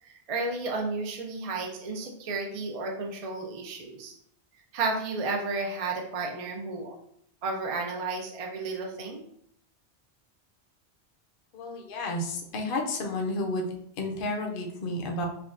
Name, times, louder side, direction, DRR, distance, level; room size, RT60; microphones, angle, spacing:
voice 1, 0.0-4.1 4.7-6.9 7.4-9.2, right 3 dB, 45° right, 1 dB, 0.5 m, -32 dB
voice 2, 11.5-15.3, left 2 dB, 55° left, 1 dB, 0.8 m, -31 dB
5.7 x 2.3 x 2.4 m, 0.70 s
omnidirectional pair, 1.1 m